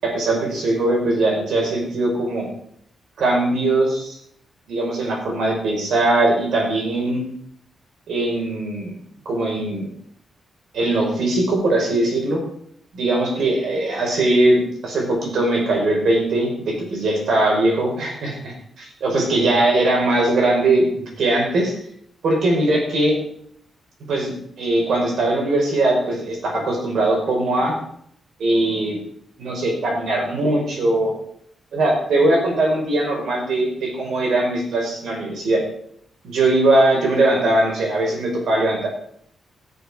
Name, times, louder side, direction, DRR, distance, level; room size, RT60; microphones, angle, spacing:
voice 1, 0.0-2.5 3.2-4.2 4.7-7.2 8.1-8.9 9.2-9.9 10.7-12.4 12.9-21.7 22.2-23.1 24.1-27.7 28.4-29.0 29.4-31.1 31.7-35.6 36.2-38.9, right 2 dB, 70° right, 0 dB, 5.1 m, -20 dB
17.0 x 7.1 x 5.7 m, 0.68 s
wide cardioid pair, 155°, 0 cm